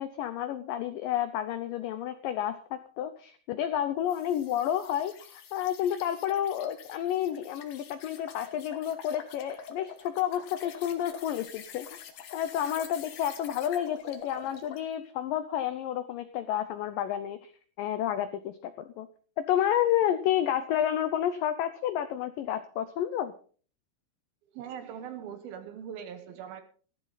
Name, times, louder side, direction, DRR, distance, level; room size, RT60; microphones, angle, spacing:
voice 1, 0.0-12.0 12.3-17.5 17.8-18.7 19.0-19.1 19.4-23.3, left 10 dB, 85° left, 11 dB, 1.9 m, -30 dB
sound 1, 4.1-14.9, left 7 dB, 60° left, 2.3 m, -46 dB
voice 2, 24.5-26.6, right 8 dB, 70° right, 10 dB, 2.6 m, -41 dB
14.5 x 12.5 x 3.9 m, 0.42 s
omnidirectional pair, 4.9 m